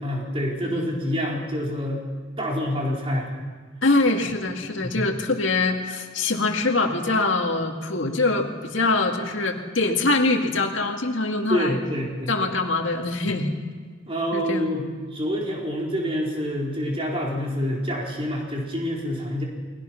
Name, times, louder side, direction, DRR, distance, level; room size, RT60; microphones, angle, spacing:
voice 1, 0.0-2.0 2.4-3.3 4.8-5.0 11.5-12.3 13.3-13.4 14.1-19.4, equal, 30° right, -2 dB, 4.2 m, -27 dB
voice 2, 3.8-11.8 12.3-13.6 14.3-14.7, left 3 dB, 70° left, 3 dB, 2.2 m, -24 dB
29.5 x 23.0 x 5.9 m, 1.5 s
head